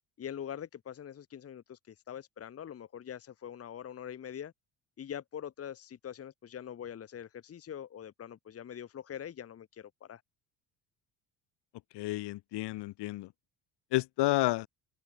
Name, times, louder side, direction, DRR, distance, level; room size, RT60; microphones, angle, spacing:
voice 1, 0.2-4.5 5.0-10.2, left 9 dB, 35° left, 1.2 m, -43 dB
voice 2, 11.9-13.3 13.9-14.7, left 18 dB, 75° left, 1.5 m, -30 dB
cardioid pair, 115°, 41 cm